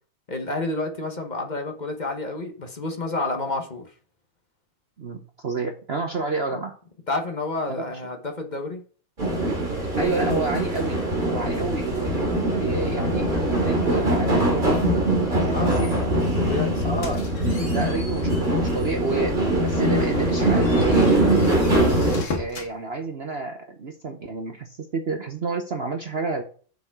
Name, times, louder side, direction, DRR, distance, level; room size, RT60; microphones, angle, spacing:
voice 1, 0.3-3.9 6.5-6.6 7.1-8.8 15.4-16.0 16.4-17.0, left 2 dB, 30° left, 5 dB, 1.0 m, -30 dB
voice 2, 5.0-6.7 7.7-8.0 9.9-12.3 12.6-14.6 15.5-16.1 16.8-17.3 17.7-21.2 22.3-26.4, right 4 dB, 45° right, 5 dB, 0.9 m, -30 dB
sound 1, 9.2-22.2, right 1 dB, 25° right, 2.8 m, -22 dB
sound 2, 16.8-18.9 19.4-19.5 19.9-22.7, left 4 dB, 70° left, 2.2 m, -38 dB
6.9 x 6.9 x 4.7 m, 0.42 s
omnidirectional pair, 1.9 m